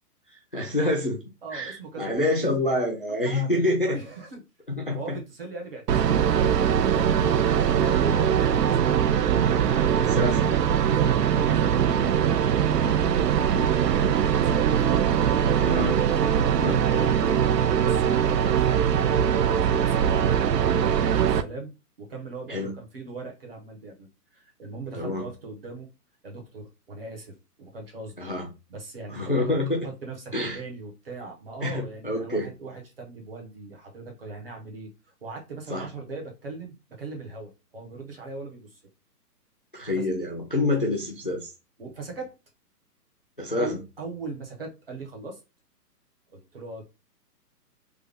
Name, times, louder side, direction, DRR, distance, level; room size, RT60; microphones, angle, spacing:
voice 1, 0.5-1.2 1.5-4.0 4.7-5.2 7.4-7.7 10.0-10.5 14.4-14.5 15.6-16.0 16.6-16.8 22.5-22.7 24.9-25.3 28.2-28.5 29.1-29.9 30.3-30.6 31.6-32.5 35.7-35.9 39.7-41.5 43.4-43.8, left 2 dB, 35° left, 0.5 m, -27 dB
voice 2, 1.4-2.6 3.2-4.4 4.9-9.2 9.6-10.4 10.7-12.4 13.8-14.7 16.1-16.5 16.7-19.0 19.3-20.6 20.8-21.7 22.0-24.1 24.3-25.9 26.2-28.3 28.7-29.6 29.8-34.9 35.2-38.8 40.0-40.1 41.8-42.3 43.6-45.4 46.3-46.8, right 3 dB, 35° right, 1.1 m, -40 dB
sound 1, 5.9-21.4, right 8 dB, 80° right, 0.6 m, -22 dB
3.4 x 2.2 x 3.4 m
hypercardioid pair, 180°, 48 cm